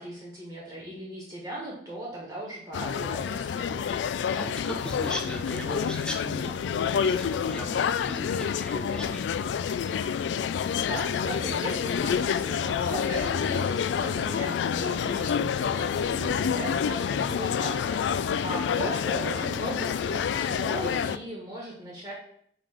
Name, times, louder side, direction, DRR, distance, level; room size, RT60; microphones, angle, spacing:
voice 1, 0.0-3.9 10.7-22.1, right 1 dB, 20° right, -3 dB, 1.2 m, -38 dB
sound 1, 2.7-21.2, left 7 dB, 85° left, 0.3 m, -28 dB
voice 2, 4.4-6.6 6.9-9.4 18.5-19.0, equal, 5° left, 2 dB, 0.7 m, -37 dB
5.7 x 3.6 x 4.9 m, 0.66 s
head